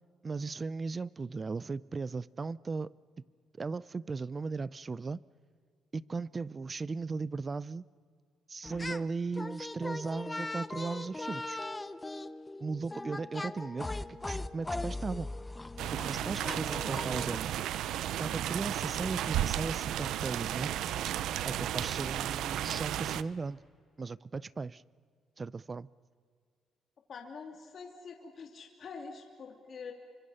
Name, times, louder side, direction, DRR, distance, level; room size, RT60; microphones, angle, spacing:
voice 1, 0.2-2.9 3.6-5.2 5.9-7.8 8.5-11.6 12.6-15.3 16.0-17.5 18.2-20.7 21.5-23.6 24.0-24.8 25.4-25.9, right 4 dB, 30° right, 21 dB, 0.6 m, -37 dB
sound 1, 8.6-9.1 9.3-17.4, left 2 dB, 15° left, 0.8 m, -39 dB
sound 2, 15.8-23.2, right 11 dB, 80° right, 0.7 m, -33 dB
voice 2, 27.1-29.9, left 5 dB, 55° left, 3 dB, 2.8 m, -45 dB
28.5 x 25.0 x 5.7 m, 2.1 s
cardioid pair, 90°, 0 cm